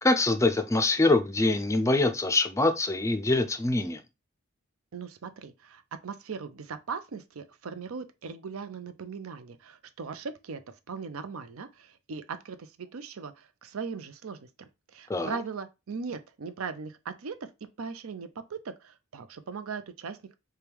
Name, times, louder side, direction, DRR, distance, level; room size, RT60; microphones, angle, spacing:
voice 1, 0.0-4.0 15.1-15.3, left 2 dB, 15° left, 0.4 m, -24 dB
voice 2, 4.9-10.6 10.9-17.4 17.8-20.3, right 5 dB, 90° right, 0.5 m, -39 dB
3.5 x 2.3 x 4.4 m
head